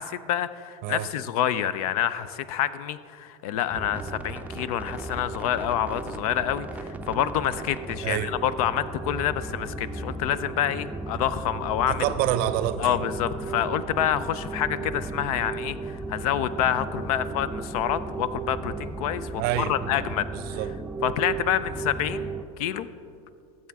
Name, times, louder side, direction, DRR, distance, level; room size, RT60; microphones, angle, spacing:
voice 1, 0.0-12.0 12.8-20.3 21.0-22.3 22.6-22.9, left 10 dB, 75° left, 15 dB, 0.5 m, -27 dB
sound 1, 3.7-22.4, right 3 dB, 10° right, 0.4 m, -35 dB
voice 2, 11.9-13.0 19.4-19.7 20.3-20.7, right 12 dB, 55° right, 13 dB, 0.6 m, -27 dB
13.5 x 7.6 x 3.5 m, 2.4 s
supercardioid pair, 110°, 19 cm